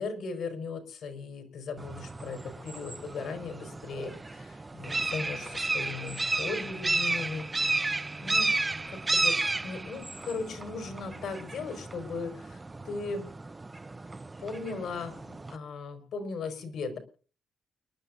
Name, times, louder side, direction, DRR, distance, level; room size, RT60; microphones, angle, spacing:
voice 1, 0.0-7.9 8.2-8.5 8.9-13.3 14.4-17.0, left 4 dB, 65° left, 6 dB, 5.1 m, -38 dB
sound 1, 1.8-15.6, right 3 dB, 15° right, 0.7 m, -33 dB
29.5 x 12.0 x 2.6 m, 0.39 s
cardioid pair, 150°, 0 cm